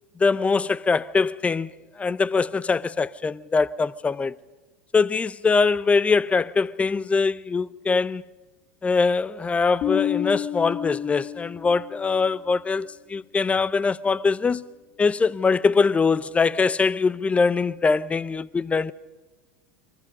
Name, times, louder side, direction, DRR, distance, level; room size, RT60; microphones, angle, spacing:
voice 1, 0.2-4.4 4.9-8.2 8.8-14.6 15.0-18.9, left 4 dB, 15° left, 0.7 m, -22 dB
Bass guitar, 9.8-12.2, left 11 dB, 45° left, 1.1 m, -29 dB
29.5 x 24.0 x 5.3 m
hypercardioid pair, 90°, 8 cm